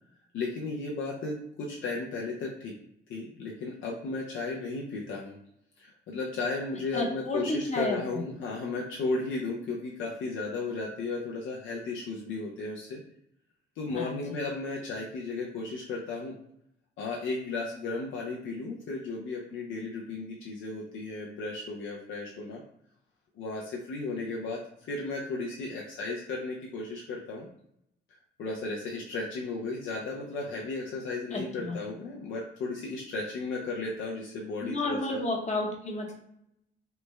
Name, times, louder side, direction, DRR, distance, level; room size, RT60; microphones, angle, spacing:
voice 1, 0.3-2.7 3.1-5.4 5.8-13.0 13.8-16.3 17.0-22.6 23.3-24.6 24.9-27.5 28.4-35.2, left 3 dB, 75° left, -2 dB, 0.5 m, -34 dB
voice 2, 6.9-8.2 13.9-14.4 31.3-31.8 34.6-36.1, left 2 dB, 35° left, 0 dB, 0.8 m, -32 dB
3.2 x 2.1 x 3.2 m, 0.76 s
cardioid pair, 90°, 20 cm